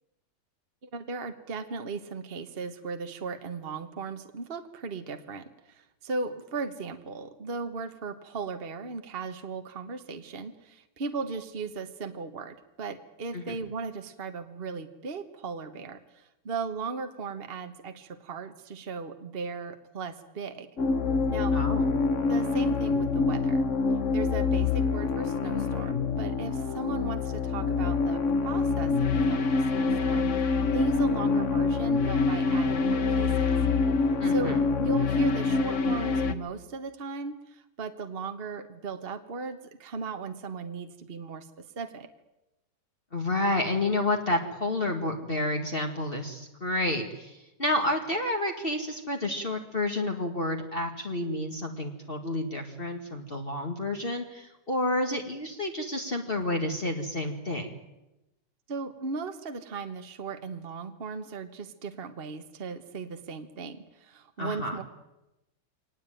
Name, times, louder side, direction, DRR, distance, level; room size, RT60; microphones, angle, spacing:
voice 1, 0.8-20.7 21.3-21.6 22.3-23.6 24.1-33.5 34.3-42.1 58.7-64.8, right 4 dB, 35° right, 7 dB, 1.3 m, -37 dB
sound 1, 20.8-36.3, left 4 dB, 45° left, 1.4 m, -26 dB
voice 2, 21.5-21.9 34.2-34.6 43.1-57.7 64.4-64.8, left 1 dB, 30° left, 2 dB, 2.1 m, -30 dB
24.5 x 19.0 x 9.1 m, 0.95 s
omnidirectional pair, 1.9 m